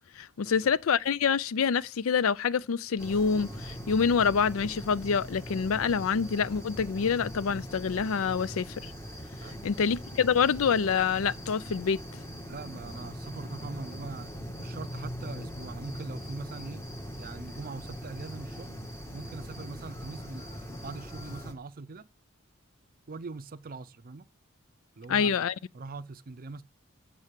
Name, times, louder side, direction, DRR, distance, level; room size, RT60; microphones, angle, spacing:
voice 1, 0.2-8.9 9.6-12.0 25.1-25.5, left 6 dB, 80° left, 0.5 m, -26 dB
sound 1, 3.0-21.5, equal, 15° left, 1.7 m, -41 dB
voice 2, 12.5-14.3 14.6-16.8 17.2-18.8 19.1-22.1 23.1-24.3 25.0-25.4 25.7-26.6, right 3 dB, 45° right, 0.5 m, -42 dB
9.7 x 5.6 x 7.5 m
head